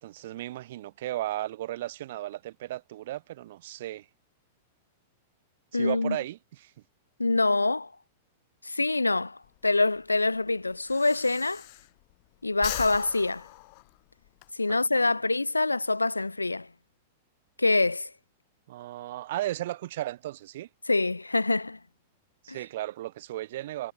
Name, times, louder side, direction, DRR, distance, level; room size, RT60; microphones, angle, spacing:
voice 1, 0.0-4.0 5.7-6.7 14.7-15.1 18.7-20.7 22.4-23.9, right 15 dB, 55° right, 1.3 m, -35 dB
voice 2, 5.7-6.2 7.2-7.9 8.6-11.6 12.4-13.5 14.6-16.7 17.6-18.1 20.9-21.8 22.5-22.6, left 3 dB, 85° left, 0.4 m, -25 dB
Breathing, 9.4-12.2 12.5-14.5, left 33 dB, 45° left, 1.1 m, -40 dB
figure-of-eight pair, 100°, 0 cm